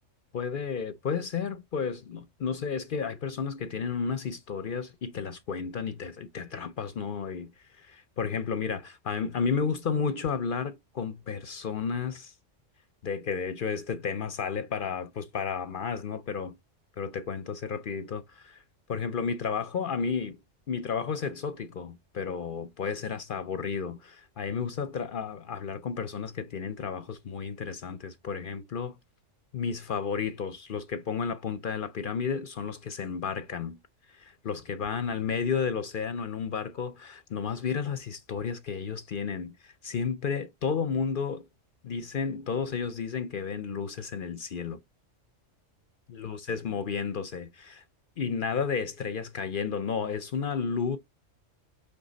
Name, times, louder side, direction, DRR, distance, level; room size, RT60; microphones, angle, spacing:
voice 1, 0.3-12.3 13.0-16.6 17.0-18.6 18.9-20.4 20.7-29.0 29.5-33.8 34.1-41.5 41.8-44.8 46.1-47.8 48.2-51.0, left 6 dB, 55° left, 0.6 m, -32 dB
8.2 x 3.4 x 3.9 m
omnidirectional pair, 1.3 m